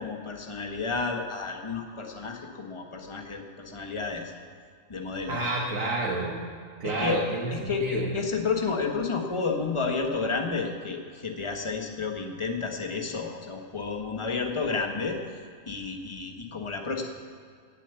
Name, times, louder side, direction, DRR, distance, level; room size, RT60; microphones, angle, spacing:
voice 1, 0.0-4.2 4.9-5.4 6.8-7.2 7.5-15.2 15.7-17.0, left 4 dB, 25° left, 3 dB, 1.3 m, -31 dB
voice 2, 5.3-6.4 6.8-8.1, right 2 dB, 90° right, -2 dB, 1.7 m, -29 dB
18.0 x 7.3 x 6.9 m, 2.2 s
omnidirectional pair, 1.3 m